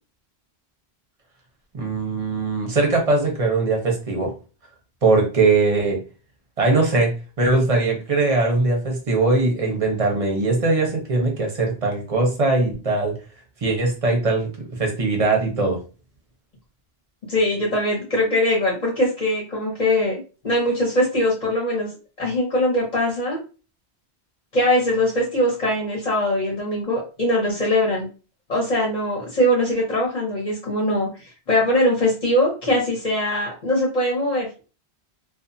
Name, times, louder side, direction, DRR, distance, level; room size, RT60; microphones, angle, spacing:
voice 1, 1.7-4.3 5.0-6.0 6.6-13.2 13.6-15.8, right 3 dB, 40° right, 1 dB, 0.8 m, -21 dB
voice 2, 17.3-21.9 22.2-23.4 24.5-28.1 28.5-31.1 31.5-34.6, left 1 dB, 40° left, -4 dB, 1.0 m, -21 dB
2.4 x 2.4 x 2.6 m, 0.34 s
omnidirectional pair, 1.1 m